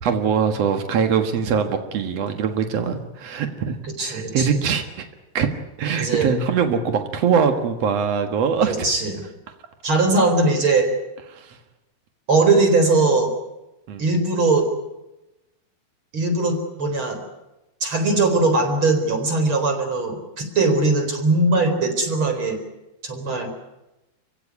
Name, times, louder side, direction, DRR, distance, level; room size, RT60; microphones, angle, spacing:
voice 1, 0.0-5.1 5.3-5.5 5.8-8.9 11.3-11.6 13.9-14.0, right 6 dB, 80° right, 6 dB, 1.4 m, -22 dB
voice 2, 3.8-4.5 6.0-6.3 8.6-9.1 9.8-10.9 12.3-13.3 14.0-14.7 16.1-17.2 17.8-22.6 23.0-23.5, right 3 dB, 25° right, 6 dB, 4.5 m, -20 dB
28.0 x 16.5 x 9.8 m, 0.96 s
omnidirectional pair, 5.6 m